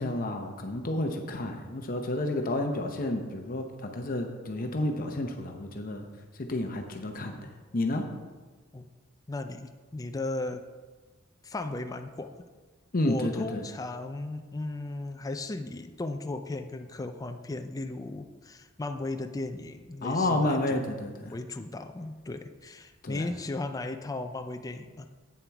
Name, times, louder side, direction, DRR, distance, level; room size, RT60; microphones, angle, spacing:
voice 1, 0.0-6.0 6.4-7.4 7.7-8.0 12.9-13.6 20.0-21.3 23.0-23.3, left 1 dB, 45° left, 4 dB, 0.8 m, -30 dB
voice 2, 9.3-10.6 11.4-12.4 13.0-20.8 21.3-25.1, left 2 dB, 20° left, 6 dB, 0.4 m, -36 dB
8.5 x 7.3 x 4.6 m, 1.3 s
head